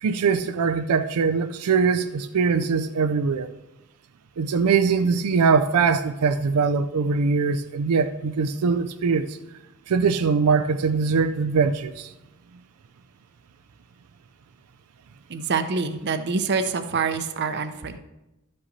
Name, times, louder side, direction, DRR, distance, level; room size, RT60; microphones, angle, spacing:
voice 1, 0.0-3.5 4.4-9.4 9.9-12.1, right 5 dB, 90° right, 0.4 m, -22 dB
voice 2, 15.3-18.0, right 4 dB, 50° right, 0.6 m, -26 dB
12.5 x 5.4 x 4.1 m
head